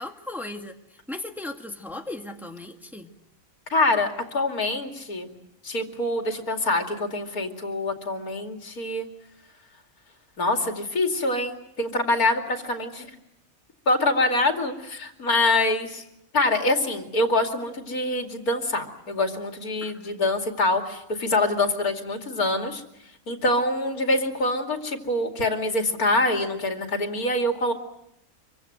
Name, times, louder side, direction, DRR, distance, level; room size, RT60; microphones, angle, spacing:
voice 1, 0.0-3.1 19.8-20.5, left 2 dB, ahead, 3 dB, 1.7 m, -37 dB
voice 2, 3.7-5.3 5.6-9.1 10.4-13.1 13.9-16.0 16.3-22.8 23.3-27.7, left 2 dB, 85° left, 4 dB, 3.0 m, -25 dB
25.5 x 24.0 x 7.8 m, 0.81 s
omnidirectional pair, 1.5 m